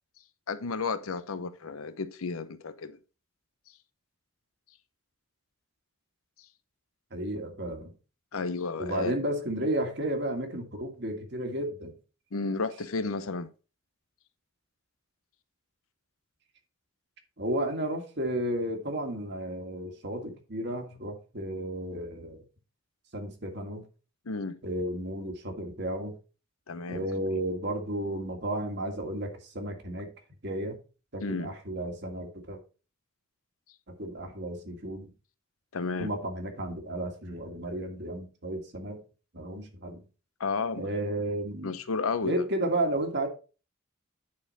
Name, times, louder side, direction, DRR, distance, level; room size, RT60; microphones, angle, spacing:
voice 1, 0.5-3.0 8.3-9.2 12.3-13.5 24.3-24.6 26.7-27.1 31.2-31.5 35.7-36.1 40.4-40.9 41.6-42.4, left 4 dB, 85° left, 0.8 m, -32 dB
voice 2, 7.1-7.9 8.8-11.9 17.4-22.4 23.1-23.8 24.6-26.1 26.9-30.1 30.4-30.8 31.1-32.6 33.9-35.1 36.0-39.0 39.3-40.0 40.7-41.8 42.2-43.3, right 1 dB, 55° right, 1.8 m, -33 dB
9.6 x 4.4 x 4.1 m
head